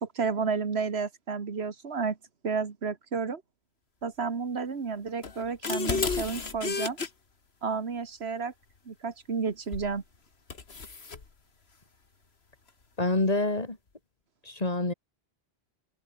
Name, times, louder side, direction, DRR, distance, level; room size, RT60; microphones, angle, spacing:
voice 1, 0.0-2.2 2.4-3.4 4.0-7.0 7.6-8.5 8.9-10.0, right 5 dB, 90° right, 1.9 m, -31 dB
sound 1, 5.2-7.1 9.7-10.0 10.5-11.2, left 4 dB, 85° left, 2.1 m, -32 dB
voice 2, 13.0-13.8 14.4-14.9, left 2 dB, 40° left, 2.5 m, -27 dB
omnidirectional pair, 1.0 m